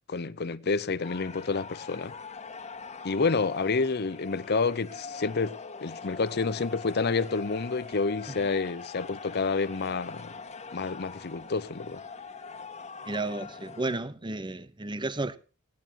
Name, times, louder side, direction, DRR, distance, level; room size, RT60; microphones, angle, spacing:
voice 1, 0.1-2.1 3.0-10.3 10.7-12.0, left 4 dB, 50° left, 0.7 m, -29 dB
sound 1, 1.0-14.0, left 4 dB, 30° left, 1.7 m, -43 dB
voice 2, 13.1-15.4, right 2 dB, 20° right, 0.8 m, -32 dB
20.0 x 16.5 x 2.9 m
head